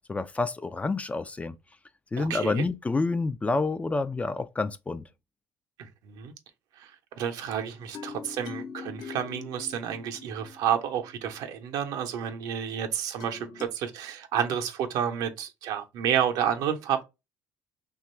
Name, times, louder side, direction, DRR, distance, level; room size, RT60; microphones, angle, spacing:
voice 1, 0.1-1.6 2.1-5.0, left 3 dB, 20° left, 0.4 m, -28 dB
voice 2, 2.2-2.7 5.8-6.3 6.8-17.0, right 9 dB, 70° right, 0.7 m, -30 dB
sound 1, 7.4-11.4 13.2-13.7, left 6 dB, 65° left, 0.8 m, -43 dB
2.9 x 2.4 x 4.1 m
hypercardioid pair, 65°, 7 cm